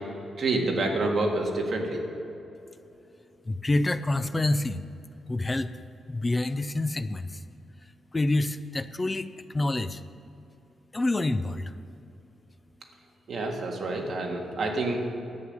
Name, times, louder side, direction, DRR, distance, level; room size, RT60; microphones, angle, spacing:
voice 1, 0.4-2.0 13.3-15.0, right 2 dB, 45° right, 1 dB, 1.7 m, -27 dB
voice 2, 3.5-4.8 5.3-5.7 6.1-7.4 8.1-9.3 9.5-10.0 10.9-11.7, left 2 dB, 20° left, 12 dB, 0.4 m, -27 dB
11.5 x 8.6 x 6.5 m, 2.9 s
wide cardioid pair, 155°, 0 cm